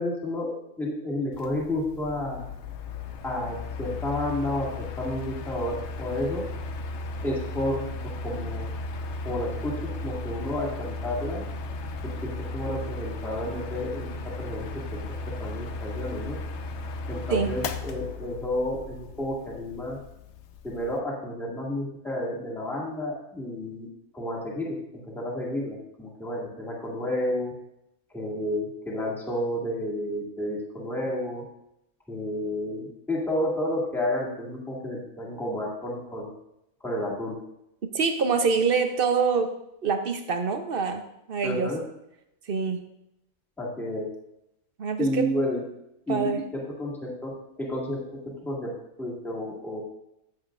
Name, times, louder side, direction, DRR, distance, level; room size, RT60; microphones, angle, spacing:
voice 1, 0.0-2.5 3.2-4.7 5.0-6.4 7.2-7.8 8.2-8.7 9.2-11.4 12.0-15.0 15.4-16.4 17.1-20.0 20.6-23.9 24.1-27.5 28.1-31.4 32.1-36.3 36.8-37.4 41.4-41.8 43.6-44.1 45.0-45.6 46.1-47.3 47.6-48.0 48.4-48.7 49.0-49.8, left 1 dB, ahead, -4 dB, 2.0 m, -31 dB
Mechanical fan, 1.3-21.0, left 3 dB, 60° left, 0.8 m, -36 dB
voice 2, 37.8-39.5 39.8-41.0 41.3-41.8 42.5-42.8 44.8-45.3 46.1-46.4, right 5 dB, 45° right, 6 dB, 0.8 m, -25 dB
15.0 x 7.6 x 2.5 m, 0.82 s
omnidirectional pair, 1.6 m